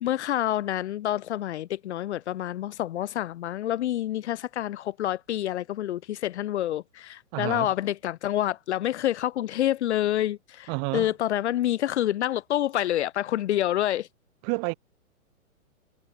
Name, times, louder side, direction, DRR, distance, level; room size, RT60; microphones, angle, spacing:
voice 1, 0.0-14.1, left 12 dB, 50° left, 1.1 m, -27 dB
voice 2, 7.3-7.7 10.7-11.1 14.4-14.7, right 40 dB or more, 35° right, 2.1 m, -29 dB
figure-of-eight pair, 120°, 42 cm